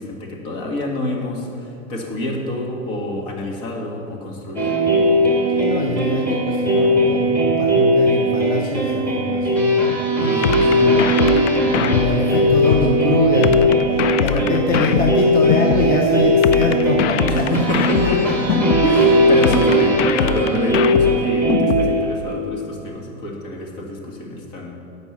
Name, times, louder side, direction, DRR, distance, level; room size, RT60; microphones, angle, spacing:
voice 1, 0.0-4.8 10.2-10.9 14.3-14.6 17.3-18.4 18.8-24.7, left 1 dB, 50° left, 0 dB, 1.9 m, -27 dB
sound 1, 4.6-22.3, equal, 5° left, 1.7 m, -18 dB
voice 2, 5.5-18.1 19.4-19.7, left 3 dB, 25° left, 0 dB, 0.9 m, -24 dB
sound 2, 10.4-12.9 13.4-15.9 16.4-18.9 19.4-21.9, left 9 dB, 70° left, 0.5 m, -22 dB
8.3 x 5.3 x 7.3 m, 2.7 s
hypercardioid pair, 120°, 38 cm